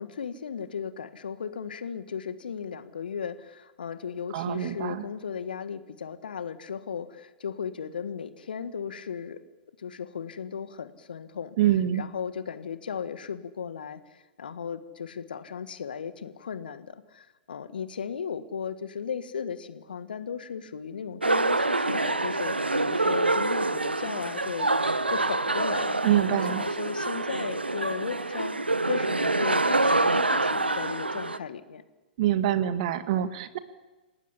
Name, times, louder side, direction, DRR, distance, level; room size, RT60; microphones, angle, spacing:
voice 1, 0.0-9.4 9.8-11.6 11.9-26.0 26.3-31.8, left 7 dB, 65° left, 11 dB, 1.7 m, -36 dB
voice 2, 4.3-5.0 11.6-12.0 26.0-26.6 32.2-33.6, right 11 dB, 45° right, 11 dB, 1.9 m, -25 dB
sound 1, 21.2-31.4, right 2 dB, 85° right, 1.2 m, -26 dB
28.0 x 19.0 x 8.5 m, 1.2 s
figure-of-eight pair, 110°, 5 cm